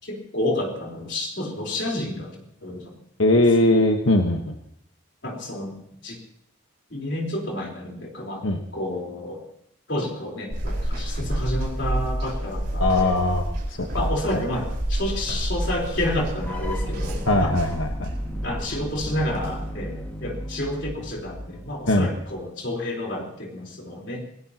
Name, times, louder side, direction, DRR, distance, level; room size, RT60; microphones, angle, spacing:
voice 1, 0.0-2.4 2.6-3.0 3.3-3.4 5.2-6.2 6.9-8.5 8.7-9.4 9.9-13.2 13.9-17.5 18.4-24.3, left 1 dB, 60° left, 0 dB, 4.1 m, -30 dB
voice 2, 3.2-4.5 8.4-8.6 12.8-14.1 14.3-14.4 17.3-18.1 21.9-22.1, left 2 dB, 90° left, 3 dB, 1.3 m, -20 dB
sound 1, 10.5-19.7, right 1 dB, 55° right, 4.8 m, -29 dB
sound 2, 16.4-22.3, equal, 10° left, 2.0 m, -35 dB
28.0 x 17.5 x 3.0 m, 0.74 s
head